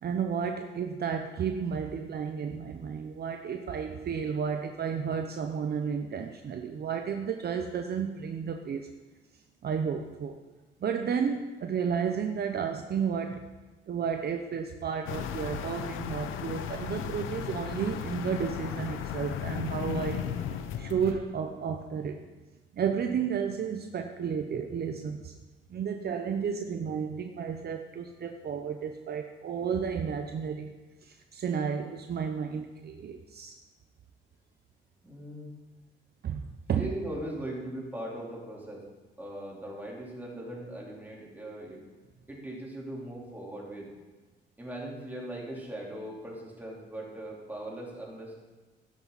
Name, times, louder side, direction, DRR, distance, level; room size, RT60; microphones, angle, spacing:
voice 1, 0.0-8.9 9.6-10.4 10.8-13.5 13.9-22.2 22.7-25.3 25.7-30.7 31.0-33.5 36.2-36.9, right 7 dB, 55° right, 5 dB, 0.8 m, -32 dB
sound 1, 15.1-21.2, left 8 dB, 85° left, 0.8 m, -35 dB
voice 2, 35.0-35.5 36.7-38.8 39.2-41.8 42.3-43.9 44.6-48.3, right 1 dB, 10° right, -4 dB, 3.8 m, -39 dB
11.5 x 11.0 x 4.1 m, 1.2 s
cardioid pair, 90°, 20 cm